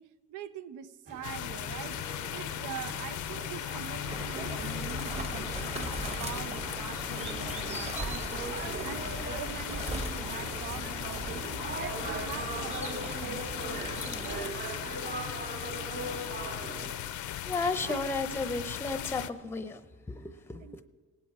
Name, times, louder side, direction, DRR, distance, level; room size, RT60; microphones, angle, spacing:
voice 1, 0.0-8.6 8.8-11.4 11.7-14.5 17.8-18.0 20.6-20.9, right 10 dB, 90° right, 14 dB, 0.6 m, -44 dB
sound 1, 1.1-16.9, right 2 dB, 45° right, 3.1 m, -41 dB
sound 2, 1.2-19.3, left 12 dB, 75° left, 0.6 m, -37 dB
sound 3, 4.1-14.5, right 2 dB, 20° right, 1.0 m, -39 dB
voice 2, 17.5-20.8, left 3 dB, 10° left, 11 dB, 0.6 m, -34 dB
18.5 x 8.3 x 4.8 m, 1.5 s
cardioid pair, 90°, 30 cm